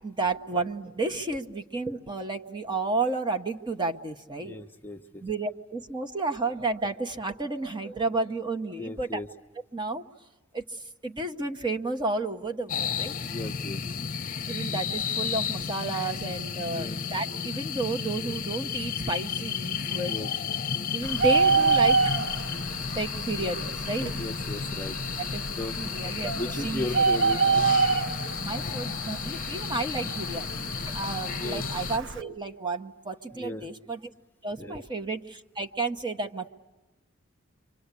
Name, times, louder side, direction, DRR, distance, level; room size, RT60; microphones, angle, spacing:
voice 1, 0.0-4.6 5.2-9.2 9.7-10.0 10.5-10.6 11.0-13.1 14.5-20.1 20.9-22.0 22.9-24.1 25.2-25.4 25.8-26.3 26.6-27.0 28.4-34.0 34.4-36.5, right 3 dB, 25° right, 5 dB, 1.0 m, -31 dB
voice 2, 4.4-5.2 8.8-9.3 13.3-13.8 16.7-17.0 20.0-20.3 24.1-25.3 25.6-25.8 26.4-27.7 31.4-31.6 33.3-33.7 34.6-34.8, left 1 dB, 10° left, 4 dB, 0.9 m, -36 dB
sound 1, 12.7-32.0, left 6 dB, 45° left, 0.8 m, -33 dB
Bird, 21.0-32.2, right 5 dB, 65° right, 0.9 m, -28 dB
28.5 x 25.0 x 8.3 m, 1.1 s
head